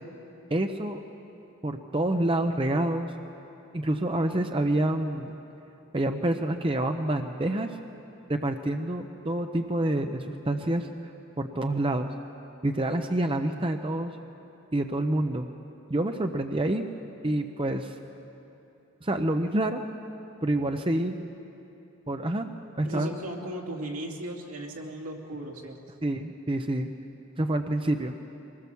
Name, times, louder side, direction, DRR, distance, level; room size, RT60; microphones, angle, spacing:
voice 1, 0.5-1.0 1.6-3.1 3.7-5.4 5.9-7.8 8.3-10.9 11.4-12.1 12.6-14.1 14.7-15.5 15.9-16.9 17.2-17.9 19.0-19.8 20.4-21.2 22.1-22.5 22.8-23.1 26.0-26.9 27.4-28.1, right 1 dB, 25° right, 6 dB, 0.6 m, -27 dB
voice 2, 22.8-25.8, right 1 dB, 85° right, 0 dB, 2.7 m, -36 dB
23.5 x 19.5 x 7.0 m, 2.9 s
head